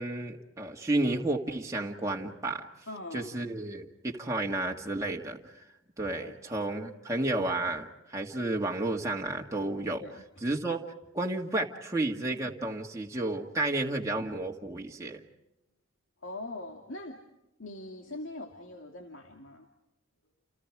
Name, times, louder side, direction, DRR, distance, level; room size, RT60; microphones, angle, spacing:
voice 1, 0.0-2.7 3.1-5.6 6.0-10.0 10.4-10.8 11.1-15.2, right 2 dB, 15° right, -1 dB, 2.1 m, -32 dB
voice 2, 2.9-3.4 6.2-6.4 10.0-10.2 16.2-17.2 17.6-19.7, left 2 dB, 70° left, 2 dB, 2.6 m, -42 dB
29.5 x 29.5 x 4.9 m, 0.91 s
head